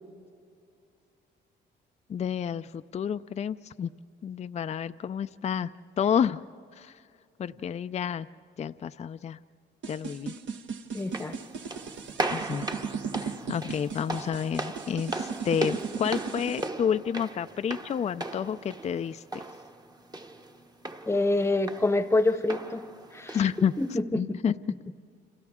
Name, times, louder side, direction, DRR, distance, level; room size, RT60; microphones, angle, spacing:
voice 1, 2.1-3.9 4.2-5.7 6.0-6.4 6.8-6.9 7.4-8.3 8.6-9.4 9.9-10.3 12.3-12.7 13.2-19.4 23.3-23.7 24.2-24.5, left 8 dB, 35° left, 11 dB, 0.4 m, -30 dB
sound 1, 9.8-16.7, right 5 dB, 70° right, 1.2 m, -36 dB
voice 2, 10.9-11.3 21.1-22.8 23.1-23.4 23.8-24.4, left 2 dB, 15° left, 11 dB, 0.9 m, -26 dB
sound 2, 11.0-24.0, right 2 dB, 20° right, 1.0 m, -38 dB
29.5 x 26.5 x 3.6 m, 2.3 s
cardioid pair, 90°, 20 cm